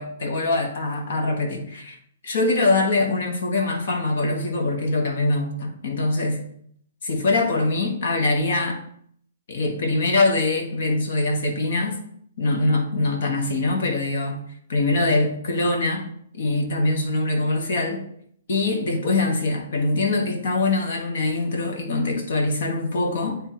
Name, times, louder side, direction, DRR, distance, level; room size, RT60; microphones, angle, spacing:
voice 1, 0.0-2.0 2.2-6.4 7.0-8.8 9.5-12.0 12.4-14.4 14.7-16.0 16.3-18.0 18.5-23.4, left 2 dB, 60° left, 3 dB, 1.4 m, -23 dB
9.3 x 3.7 x 3.0 m, 0.64 s
figure-of-eight pair, 120°, 0 cm